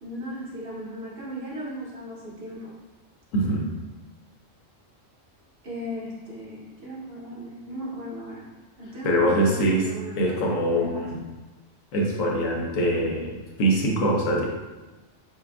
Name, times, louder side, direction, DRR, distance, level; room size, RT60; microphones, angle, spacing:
voice 1, 0.0-2.7 5.6-8.5 8.8-10.5 10.7-11.0, equal, 50° right, -6 dB, 1.2 m, -36 dB
voice 2, 3.3-3.7 9.0-9.9 10.2-11.2 11.9-14.5, right 1 dB, 85° left, -1 dB, 1.1 m, -23 dB
5.9 x 2.4 x 2.3 m, 1.1 s
omnidirectional pair, 1.3 m